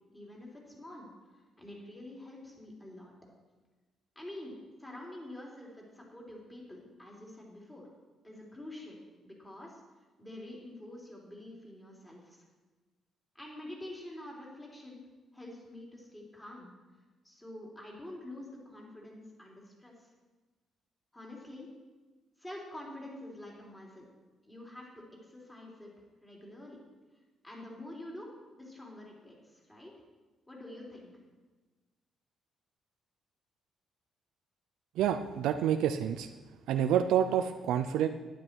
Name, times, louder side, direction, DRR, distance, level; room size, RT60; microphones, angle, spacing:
voice 1, 0.1-1.1 1.6-3.1 4.2-4.5 4.8-7.9 8.2-9.0 9.2-9.8 10.2-12.4 13.4-15.0 15.3-16.7 17.2-19.9 21.1-21.7 22.4-24.1 24.4-25.9 26.2-26.8 27.4-28.3 28.6-29.9 30.5-31.1, left 1 dB, 15° left, -2 dB, 3.6 m, -47 dB
voice 2, 35.0-36.3 36.7-38.1, right 9 dB, 90° right, 7 dB, 0.5 m, -28 dB
11.5 x 10.5 x 4.6 m, 1.3 s
cardioid pair, 90°, 0 cm